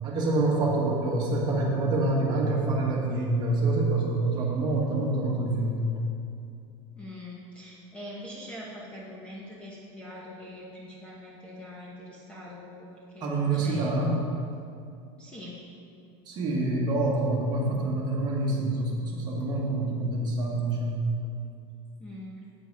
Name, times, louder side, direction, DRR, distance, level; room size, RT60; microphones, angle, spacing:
voice 1, 0.0-6.0 13.2-14.2 16.3-21.0, right 2 dB, 25° right, -2 dB, 1.6 m, -26 dB
voice 2, 7.0-14.1 15.2-15.6 22.0-22.4, left 1 dB, 5° left, -5 dB, 1.0 m, -43 dB
8.7 x 8.1 x 4.7 m, 2.5 s
supercardioid pair, 170°, 16 cm